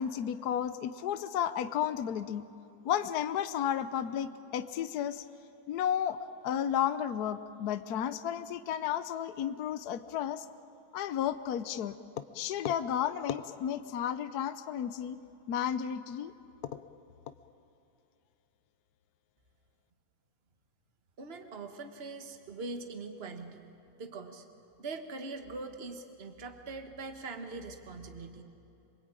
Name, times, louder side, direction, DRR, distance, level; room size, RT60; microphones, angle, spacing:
voice 1, 0.0-2.4 2.8-5.3 5.7-6.2 6.4-10.4 10.9-12.0 12.3-15.2 15.5-16.3 16.7-16.8, left 9 dB, 65° left, 12 dB, 1.1 m, -32 dB
voice 2, 21.2-23.6 24.0-24.5 24.8-28.4, right 3 dB, 35° right, 6 dB, 1.7 m, -42 dB
27.0 x 22.5 x 9.0 m, 2.8 s
omnidirectional pair, 2.1 m